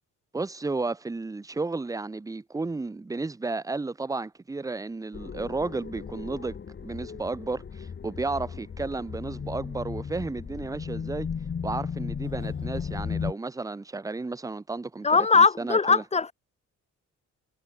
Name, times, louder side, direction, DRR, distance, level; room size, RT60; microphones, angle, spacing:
voice 1, 0.3-6.6 6.8-11.3 11.6-16.0, right 3 dB, 10° right, 0.6 m, -33 dB
sound 1, 5.1-13.3, left 6 dB, 40° left, 1.9 m, -35 dB
voice 2, 15.0-16.3, left 4 dB, 20° left, 0.7 m, -20 dB
cardioid pair, 90°, 30 cm